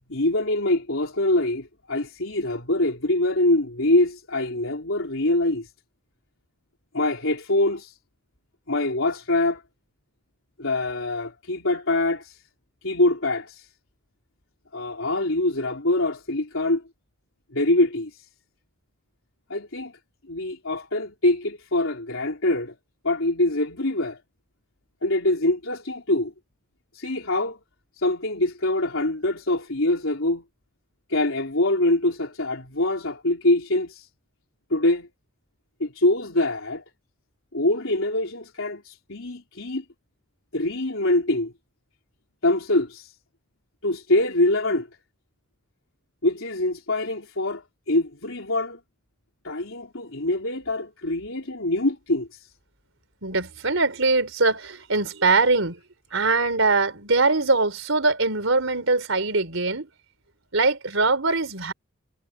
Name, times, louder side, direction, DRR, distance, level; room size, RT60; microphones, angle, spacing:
voice 1, 0.1-5.7 6.9-7.9 8.7-9.6 10.6-12.4 12.8-13.7 14.7-16.8 17.5-18.2 19.5-19.9 20.3-22.8 23.0-24.2 25.0-26.3 26.9-27.6 28.0-30.4 31.1-34.1 34.7-35.1 35.8-36.8 37.5-39.8 40.5-41.5 42.4-43.1 43.8-44.9 46.2-48.8 49.4-52.4, left 2 dB, 80° left, 3.7 m, -24 dB
voice 2, 53.2-55.8 56.1-59.9 60.5-61.7, right 3 dB, 75° right, 3.9 m, -22 dB
head